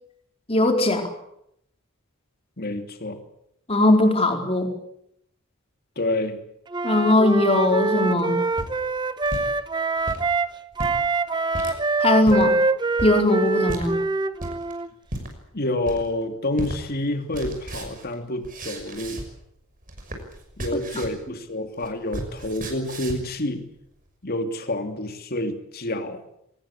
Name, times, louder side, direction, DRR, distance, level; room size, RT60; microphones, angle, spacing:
voice 1, 0.5-1.0 3.7-4.7 6.8-8.4 12.0-12.5 13.0-14.0, left 1 dB, 30° left, 4 dB, 4.3 m, -19 dB
voice 2, 2.6-3.2 6.0-6.4 15.5-19.2 20.6-23.7 24.2-26.2, left 1 dB, 45° left, 6 dB, 2.9 m, -28 dB
Wind instrument woodwind instrument, 6.7-10.5 10.8-14.9, right 3 dB, 20° right, 1.0 m, -24 dB
sound 1, 8.3-9.5 10.0-10.3 10.7-11.0 11.5-11.8 12.2-12.5 13.0-13.2 13.7-13.9 14.4-14.7 15.1-15.3 15.8-16.2 16.6-16.8 17.1-19.5 19.8-21.2 21.5-23.3, right 1 dB, 40° right, 6.0 m, -34 dB
23.5 x 19.5 x 8.6 m, 0.76 s
head